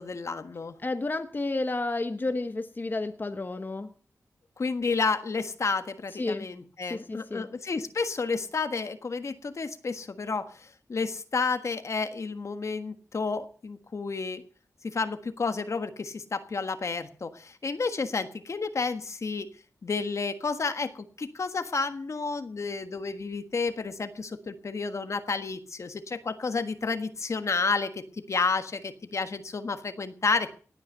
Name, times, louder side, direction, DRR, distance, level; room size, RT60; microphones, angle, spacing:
voice 1, 0.0-0.7 4.6-14.4 14.8-19.5 19.8-28.0 28.3-30.5, left 4 dB, 55° left, 9 dB, 1.5 m, -31 dB
voice 2, 0.8-3.9 6.2-6.5 6.9-7.5, left 2 dB, 35° left, 7 dB, 1.1 m, -31 dB
18.0 x 9.1 x 6.5 m, 0.43 s
wide cardioid pair, 80°, 6 cm